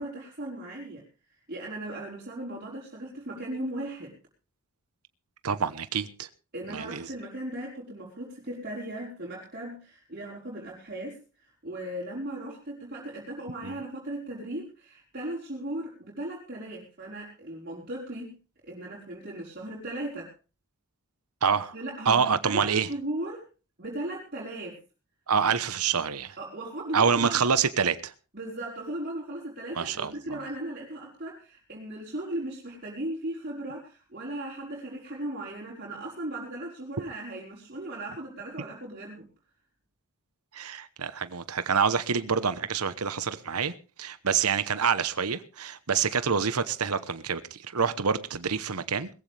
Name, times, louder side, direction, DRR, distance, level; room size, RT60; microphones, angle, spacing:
voice 1, 0.0-4.1 6.5-18.3 18.6-20.3 21.7-23.4 23.8-24.8 26.4-27.4 28.3-39.3, right 1 dB, 45° right, 5.0 m, -37 dB
voice 2, 5.4-6.3 6.7-7.1 13.6-13.7 21.4-21.7 22.1-22.9 25.3-26.4 26.9-28.1 29.8-30.4 40.5-43.7 44.0-49.1, right 6 dB, 85° right, 1.0 m, -27 dB
21.0 x 15.0 x 3.4 m
head